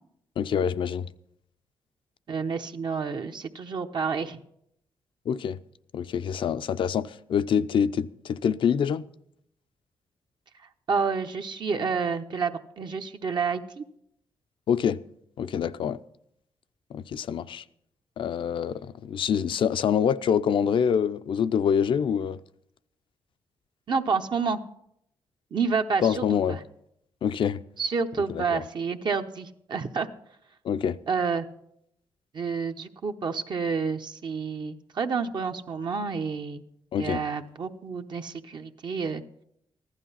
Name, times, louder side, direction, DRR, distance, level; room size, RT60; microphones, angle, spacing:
voice 1, 0.4-1.1 5.3-5.6 5.9-9.1 14.7-15.0 15.4-16.0 16.9-17.6 18.2-22.4 26.0-26.6 27.2-27.6 28.3-28.6 30.6-31.0 36.9-37.2, left 8 dB, 70° left, 0.6 m, -26 dB
voice 2, 2.3-4.4 10.9-13.8 23.9-24.6 25.5-26.6 27.8-30.1 31.1-31.5 32.3-36.6 37.0-39.2, right 5 dB, 55° right, 0.9 m, -29 dB
15.0 x 12.0 x 5.6 m
cardioid pair, 80°, 9 cm